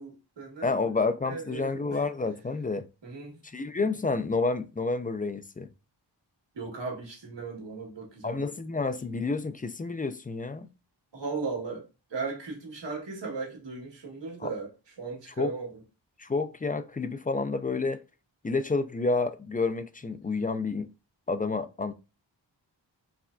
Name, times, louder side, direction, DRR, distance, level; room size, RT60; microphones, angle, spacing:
voice 1, 0.0-0.7 1.3-2.0 3.0-3.4 6.5-8.5 9.0-9.2 11.1-11.8 12.1-14.7 15.0-15.8, right 4 dB, 70° right, 1.8 m, -37 dB
voice 2, 0.6-2.8 3.4-5.7 8.2-10.7 14.4-14.5 15.4-15.5 16.2-18.0 18.4-20.9 21.3-21.9, left 3 dB, 20° left, 0.3 m, -29 dB
4.8 x 3.3 x 2.5 m
wide cardioid pair, 95°, 45 cm